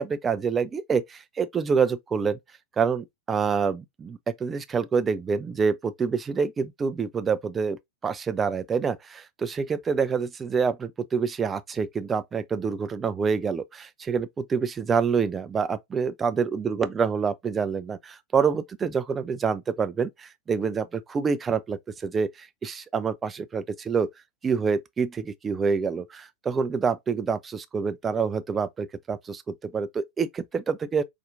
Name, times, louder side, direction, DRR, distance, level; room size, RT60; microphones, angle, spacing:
voice 1, 0.0-2.4 2.8-24.1 24.4-31.0, right 5 dB, 20° right, 0.4 m, -27 dB
4.1 x 2.5 x 2.5 m
figure-of-eight pair, 90°, 0 cm